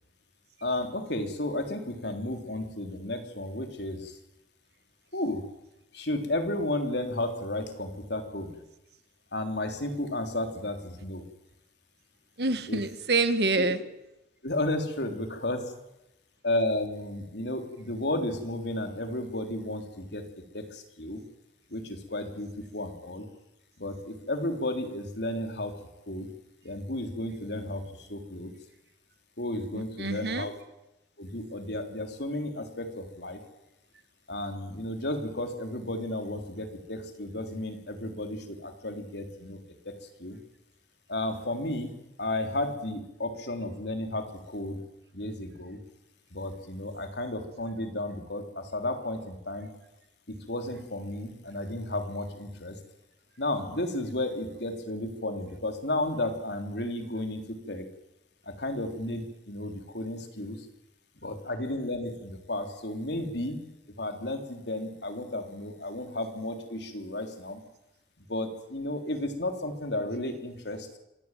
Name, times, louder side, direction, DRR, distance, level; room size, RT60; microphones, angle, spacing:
voice 1, 0.6-4.2 5.1-5.5 5.9-8.6 9.3-11.3 12.7-12.8 13.6-13.7 14.4-15.6 16.4-21.2 21.7-23.3 23.8-25.7 26.1-26.3 26.6-28.5 29.4-30.5 31.2-33.4 34.3-39.9 40.2-40.4 41.1-44.8 45.1-45.8 46.3-49.7 50.5-52.8 53.4-57.9 58.4-60.7 61.2-63.6 64.0-67.6 68.3-71.0, left 1 dB, 70° left, 5 dB, 3.6 m, -33 dB
voice 2, 12.4-13.8 29.7-30.5, right 3 dB, 60° right, 11 dB, 1.8 m, -27 dB
25.5 x 17.0 x 9.2 m, 0.92 s
head